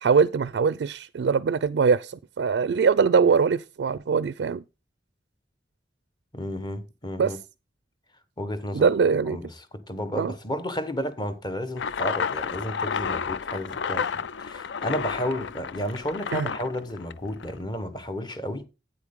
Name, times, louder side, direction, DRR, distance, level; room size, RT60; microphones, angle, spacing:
voice 1, 0.0-4.6 7.2-7.3 8.7-9.4 10.2-10.3 16.3-16.5, right 5 dB, 70° right, 0.4 m, -22 dB
voice 2, 6.3-7.4 8.4-8.9 9.3-9.5 9.9-18.6, equal, 25° left, 1.0 m, -32 dB
sound 1, 11.8-17.6, left 6 dB, 80° left, 0.4 m, -31 dB
8.7 x 8.2 x 3.6 m
head